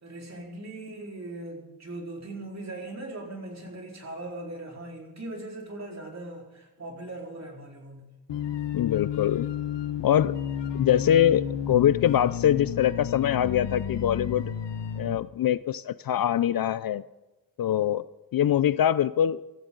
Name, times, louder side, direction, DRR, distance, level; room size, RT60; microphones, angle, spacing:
voice 1, 0.0-8.1, right 2 dB, 40° right, -1 dB, 4.3 m, -39 dB
sound 1, 8.3-15.2, left 9 dB, 80° left, 1.2 m, -32 dB
voice 2, 8.7-9.5 10.0-10.4 10.7-14.5 15.0-17.0 17.6-18.0 18.3-19.4, left 10 dB, 55° left, 17 dB, 0.5 m, -23 dB
24.5 x 15.0 x 3.9 m, 1.1 s
wide cardioid pair, 110°, 42 cm